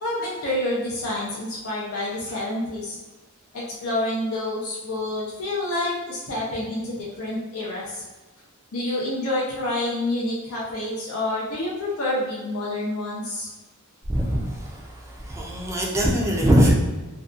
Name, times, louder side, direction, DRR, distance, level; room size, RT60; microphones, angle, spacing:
voice 1, 0.0-3.0 3.5-8.0 8.7-13.5, left 1 dB, 80° left, -5 dB, 0.6 m, -28 dB
voice 2, 14.1-14.8 15.2-16.7, equal, 15° right, -1 dB, 0.3 m, -21 dB
2.6 x 2.3 x 2.3 m, 1.2 s
head